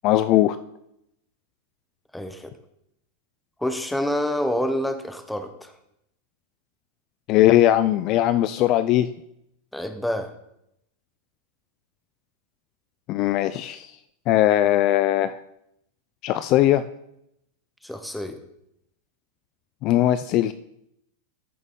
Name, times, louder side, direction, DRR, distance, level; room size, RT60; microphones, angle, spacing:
voice 1, 0.0-0.6 7.3-9.1 13.1-13.9 14.3-15.4 16.2-16.8 19.8-20.5, left 13 dB, 35° left, 13 dB, 0.3 m, -19 dB
voice 2, 2.1-2.5 3.6-5.7 9.7-10.3 17.8-18.4, left 1 dB, ahead, 8 dB, 0.8 m, -27 dB
14.0 x 6.5 x 3.7 m, 0.79 s
supercardioid pair, 160°, 0 cm